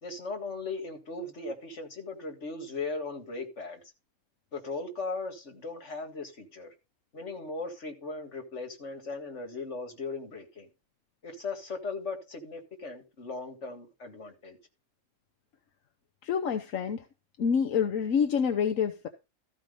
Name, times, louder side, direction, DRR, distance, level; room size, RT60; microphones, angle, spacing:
voice 1, 0.0-3.8 4.5-6.7 7.1-10.7 11.2-14.6, left 3 dB, 65° left, 2.3 m, -38 dB
voice 2, 16.2-17.0 17.4-19.1, left 7 dB, 85° left, 1.3 m, -27 dB
14.0 x 5.1 x 5.3 m
omnidirectional pair, 1.3 m